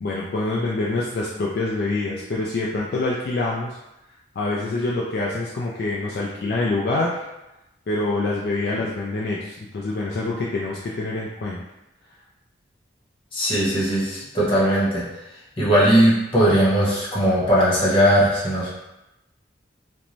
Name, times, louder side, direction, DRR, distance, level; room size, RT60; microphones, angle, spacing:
voice 1, 0.0-3.7 4.4-7.2 7.9-11.6, left 2 dB, 55° left, -5 dB, 0.3 m, -26 dB
voice 2, 13.3-15.0 15.6-18.7, equal, 30° left, -7 dB, 0.8 m, -19 dB
2.5 x 2.1 x 3.0 m, 0.94 s
head